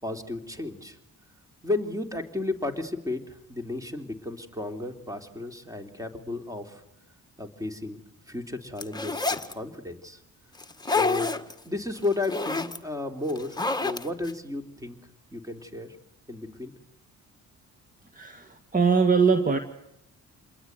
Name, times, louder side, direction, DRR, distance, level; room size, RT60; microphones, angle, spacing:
voice 1, 0.0-1.0 1.6-6.8 7.4-8.0 8.3-9.2 9.5-10.2 10.9-11.3 11.6-15.0 15.3-16.0 16.3-16.7, left 2 dB, 10° right, 6 dB, 3.3 m, -33 dB
sound 1, 8.8-9.5 10.6-11.5 12.0-12.8 13.3-14.3, left 3 dB, 15° left, 1.7 m, -28 dB
voice 2, 18.1-19.6, right 5 dB, 25° right, 7 dB, 2.0 m, -22 dB
28.0 x 21.0 x 9.6 m, 0.83 s
cardioid pair, 90°, 30 cm